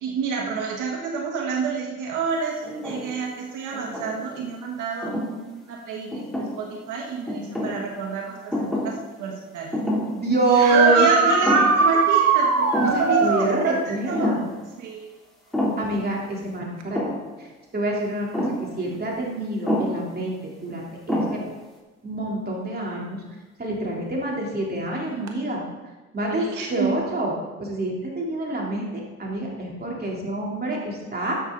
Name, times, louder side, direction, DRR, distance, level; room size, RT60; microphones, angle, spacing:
voice 1, 0.0-9.8 10.7-14.4 14.8-15.1 26.3-27.0, right 5 dB, 85° right, 0 dB, 1.5 m, -28 dB
sound 1, 2.6-3.2 3.7-4.4 5.0-5.3 6.1-6.8 7.3-7.8 8.5-9.0 9.3-9.4 9.7-10.2 10.6-10.7 11.2-11.9 12.2-12.3 12.7-13.1 14.1-14.5 15.5-16.0 16.9-17.3 18.3-18.7 19.7-20.0 20.7-20.8 21.1-21.6, equal, ahead, 3.0 m, -27 dB
voice 2, 10.1-11.1 12.8-14.4 15.8-17.0 17.7-18.5 18.8-21.4 22.0-23.2 23.6-25.6 26.1-27.3 27.6-31.3, right 2 dB, 30° right, -3 dB, 3.3 m, -26 dB
sound 2, 10.5-13.5 16.8-16.9 18.9-19.0 25.3-25.4, right 5 dB, 60° right, 1.5 m, -20 dB
14.0 x 7.1 x 3.9 m, 1.2 s
cardioid pair, 90°, 30 cm